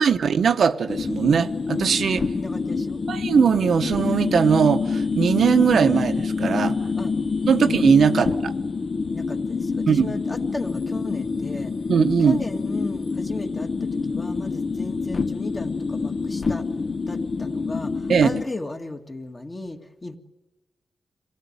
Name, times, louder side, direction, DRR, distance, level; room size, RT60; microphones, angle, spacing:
voice 1, 0.0-2.3 3.1-6.8 7.5-8.5 9.9-10.1 11.9-12.4 18.1-18.3, right 6 dB, 70° right, 1.0 m, -20 dB
sound 1, 0.9-18.4, left 4 dB, 40° left, 0.8 m, -26 dB
voice 2, 2.3-3.0 7.0-7.1 7.6-7.8 8.1-8.2 9.1-11.7 12.2-16.7 17.1-20.2, left 2 dB, 25° left, 2.0 m, -35 dB
26.5 x 17.0 x 9.6 m
wide cardioid pair, 120°, 0 cm